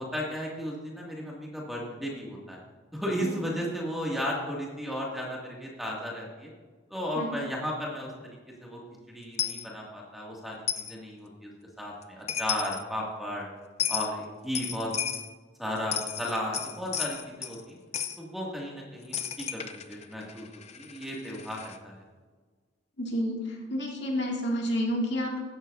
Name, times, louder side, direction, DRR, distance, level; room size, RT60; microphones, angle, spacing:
voice 1, 0.0-2.6 2.9-6.5 6.9-8.1 8.6-8.8 9.1-10.6 10.9-11.5 11.8-13.5 13.9-14.9 15.6-17.8 18.2-20.4 20.7-22.0, equal, ahead, -3 dB, 2.2 m, -34 dB
Coin (dropping), 9.4-9.6 10.7-10.9 12.0-12.1 12.3-12.8 13.8-14.1 14.6-15.3 15.8-17.6 17.9-18.2 19.1-21.8, left 8 dB, 35° left, 0.6 m, -33 dB
voice 2, 23.0-25.4, equal, 70° left, -1 dB, 2.3 m, -30 dB
15.5 x 12.0 x 2.7 m, 1.4 s
head